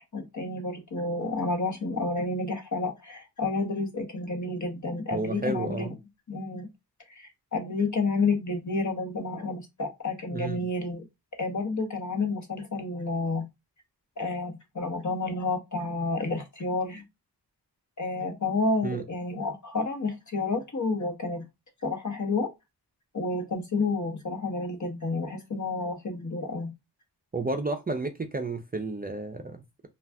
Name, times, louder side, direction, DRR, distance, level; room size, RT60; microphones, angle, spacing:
voice 1, 0.0-5.9 6.3-6.7 7.1-11.0 11.4-13.4 14.2-17.0 18.0-21.4 21.8-22.5 23.1-26.7, left 3 dB, 45° left, 1.0 m, -30 dB
voice 2, 5.1-6.0 10.3-10.6 18.8-19.0 27.3-29.6, right 3 dB, 25° right, 0.4 m, -31 dB
2.4 x 2.4 x 3.3 m
wide cardioid pair, 65°, 39 cm